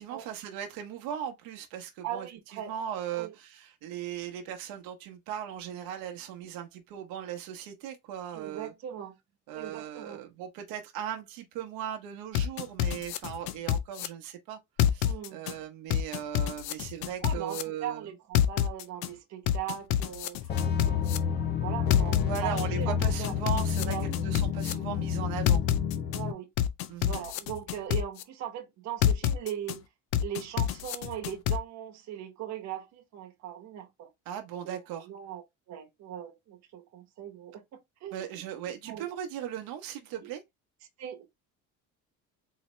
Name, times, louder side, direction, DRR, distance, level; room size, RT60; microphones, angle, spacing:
voice 1, 0.0-2.3 2.5-8.7 9.5-14.6 14.9-18.0 22.2-25.6 26.9-27.2 34.3-35.1 38.1-40.4, right 10 dB, 85° right, 0.9 m, -38 dB
voice 2, 2.0-2.7 3.1-3.3 8.3-9.2 9.5-10.2 15.0-15.4 17.2-23.3 23.8-24.2 24.9-25.1 26.1-26.5 27.1-29.8 30.2-34.1 34.6-35.4 35.7-38.4 38.8-39.2 40.2-40.3 41.0-41.2, right 10 dB, 50° right, 1.0 m, -39 dB
sound 1, 12.3-14.1 14.8-15.5 15.9-17.6 18.3-19.1 19.5-21.2 21.9-22.6 23.0-24.7 25.5-26.2 26.6-28.2 29.0-29.8 30.1-31.6, left 11 dB, 85° left, 0.6 m, -27 dB
sound 2, 20.5-26.3, left 7 dB, 30° left, 0.5 m, -30 dB
4.1 x 2.8 x 3.1 m
cardioid pair, 170°, 34 cm